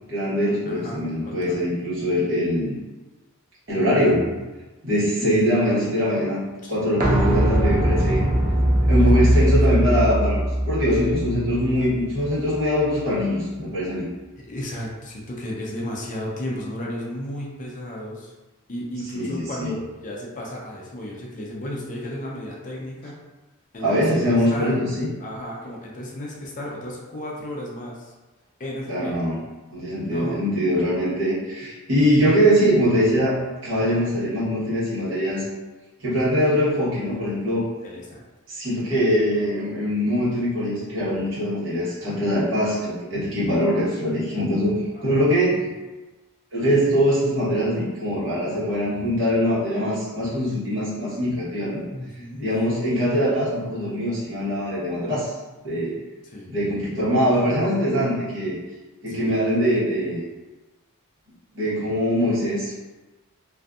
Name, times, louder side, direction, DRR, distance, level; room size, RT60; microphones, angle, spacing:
voice 1, 0.1-2.7 3.7-4.4 4.8-8.2 8.8-14.0 19.1-19.7 23.8-25.1 28.9-29.4 29.7-35.5 36.0-37.6 38.5-45.6 46.5-51.8 52.4-55.3 55.6-56.0 56.5-58.5 59.0-60.2 61.5-62.8, equal, 60° right, -10 dB, 1.2 m, -22 dB
voice 2, 0.7-1.6 5.2-5.4 6.6-6.7 9.0-9.4 9.9-10.1 14.4-18.3 18.7-23.2 23.7-24.8 25.2-28.1 28.6-29.3 30.0-30.4 33.9-34.1 37.8-38.2 44.9-45.3 51.9-52.5 56.2-56.5 59.1-59.3, left 1 dB, 35° left, -3 dB, 0.4 m, -34 dB
sound 1, 7.0-12.6 12.9-13.0, right 1 dB, 40° right, 0.4 m, -21 dB
2.6 x 2.5 x 2.3 m, 1.1 s
head